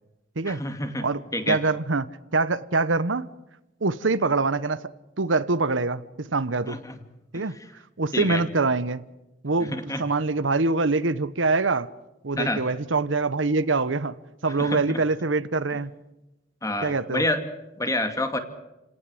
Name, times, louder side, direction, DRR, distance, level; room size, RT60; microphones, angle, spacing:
voice 1, 0.5-1.1 1.3-1.6 6.7-7.0 7.3-7.4 8.1-8.4 9.7-10.0 12.4-12.6 14.6-15.0 16.6-17.4 17.8-18.4, left 1 dB, 15° left, 2.4 m, -28 dB
voice 2, 1.0-3.3 3.8-4.9 5.2-6.8 7.3-7.6 8.0-9.0 9.4-11.9 12.2-14.1 14.4-15.9 16.8-17.2, right 3 dB, 85° right, 1.1 m, -24 dB
29.5 x 18.0 x 7.9 m
head